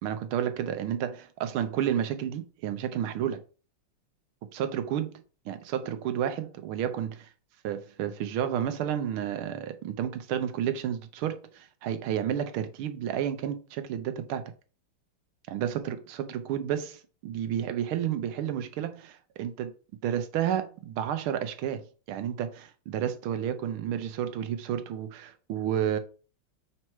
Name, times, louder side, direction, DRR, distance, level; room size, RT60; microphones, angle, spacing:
voice 1, 0.0-3.4 4.5-7.3 7.6-14.5 15.5-19.7 20.0-26.0, right 9 dB, 80° right, 1.6 m, -31 dB
4.6 x 4.4 x 5.7 m
omnidirectional pair, 2.4 m